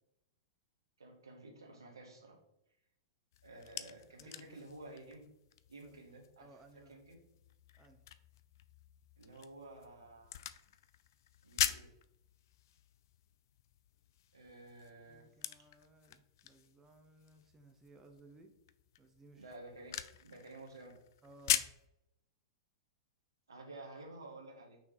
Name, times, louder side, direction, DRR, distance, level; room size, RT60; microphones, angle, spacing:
voice 1, 1.0-2.4 3.4-5.2 5.7-7.2 9.2-10.5 11.4-11.9 14.3-15.7 19.4-21.0 23.5-24.8, right 2 dB, 80° right, 1 dB, 1.5 m, -52 dB
sound 1, 3.3-21.9, left 11 dB, 55° left, 0.4 m, -43 dB
voice 2, 4.2-4.6 5.8-6.1 6.4-7.0 7.8-8.0 15.1-18.5 19.0-19.5 21.2-21.7, right 2 dB, 20° right, 4 dB, 0.8 m, -60 dB
6.0 x 3.7 x 4.7 m, 0.85 s
figure-of-eight pair, 100°, 2 cm